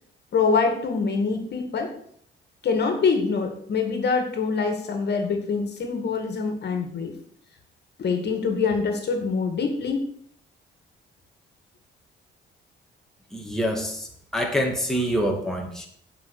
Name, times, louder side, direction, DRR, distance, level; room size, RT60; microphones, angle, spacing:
voice 1, 0.3-1.9 2.6-7.2 8.0-10.0, left 5 dB, 55° left, 5 dB, 2.2 m, -25 dB
voice 2, 13.3-15.9, equal, ahead, 1 dB, 2.6 m, -26 dB
9.6 x 5.7 x 8.3 m, 0.64 s
cardioid pair, 90°, 20 cm